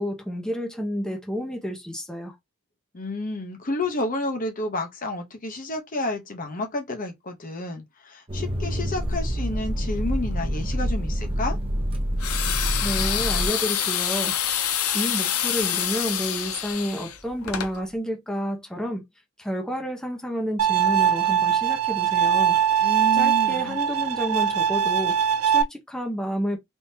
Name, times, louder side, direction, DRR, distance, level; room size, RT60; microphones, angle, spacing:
voice 1, 0.0-2.3 12.8-14.4 14.6-19.0 19.4-22.9 23.2-26.6, equal, 5° left, 0.7 m, -30 dB
voice 2, 2.9-11.6 22.8-23.8, left 2 dB, 40° left, 0.8 m, -30 dB
sound 1, 8.3-13.5, equal, 25° right, 0.8 m, -27 dB
sound 2, 12.2-17.7, left 10 dB, 85° left, 0.6 m, -26 dB
Bowed string instrument, 20.6-25.6, right 9 dB, 85° right, 0.4 m, -21 dB
3.5 x 2.7 x 2.7 m
head